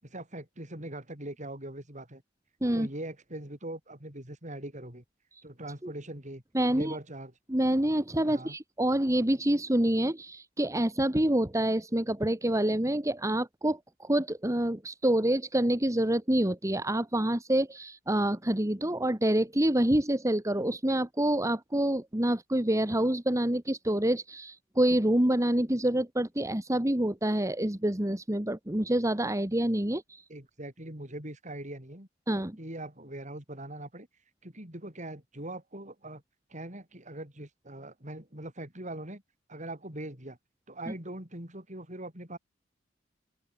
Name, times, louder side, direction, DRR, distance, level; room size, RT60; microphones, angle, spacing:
voice 1, 0.0-2.2 2.7-5.0 5.4-6.4 6.7-7.3 8.2-8.6 30.3-32.1 32.6-34.1 34.4-36.2 36.5-39.2 39.5-40.4 40.7-42.4, right 1 dB, 40° right, 8.0 m, -41 dB
voice 2, 6.5-7.0 7.5-30.2 32.3-32.6 40.9-41.0, right 1 dB, 15° right, 1.7 m, -27 dB
open air
head